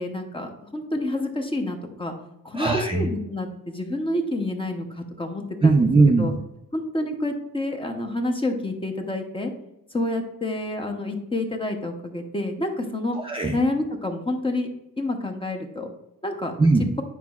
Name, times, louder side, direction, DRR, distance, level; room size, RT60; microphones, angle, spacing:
voice 1, 0.0-2.1 2.4-5.8 6.2-6.3 6.7-9.5 9.9-13.2 13.5-14.7 15.0-15.9 16.2-16.5, left 1 dB, 15° left, 3 dB, 0.7 m, -28 dB
voice 2, 2.5-3.1 5.6-6.4 13.1-13.6 16.6-16.9, right 3 dB, 15° right, 2 dB, 0.3 m, -19 dB
9.3 x 5.2 x 2.3 m, 0.88 s
wide cardioid pair, 170°, 37 cm